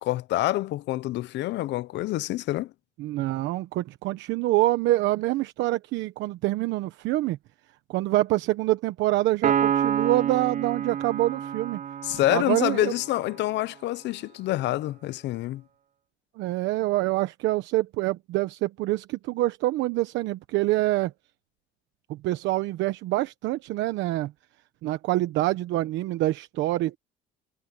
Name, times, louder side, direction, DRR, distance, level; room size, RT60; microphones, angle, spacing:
voice 1, 0.0-2.7 12.0-15.6, left 16 dB, 70° left, 0.7 m, -27 dB
voice 2, 3.0-7.4 7.9-11.8 12.3-12.9 16.4-21.1 22.1-24.3 24.8-27.0, right 17 dB, 75° right, 1.1 m, -26 dB
Piano, 9.4-13.0, right 9 dB, 40° right, 0.5 m, -28 dB
cardioid pair, 100°, 19 cm